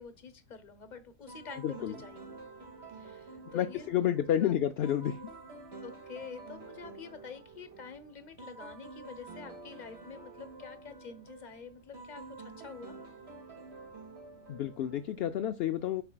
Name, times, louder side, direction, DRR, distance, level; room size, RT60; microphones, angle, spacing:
voice 1, 0.0-2.2 2.9-4.1 4.3-4.5 5.8-13.0, left 6 dB, 35° left, 1.0 m, -47 dB
sound 1, 1.3-15.5, right 3 dB, 50° right, 2.2 m, -49 dB
voice 2, 1.6-1.9 3.5-5.2 14.5-16.0, left 11 dB, 65° left, 0.7 m, -30 dB
7.9 x 5.9 x 2.3 m
omnidirectional pair, 1.4 m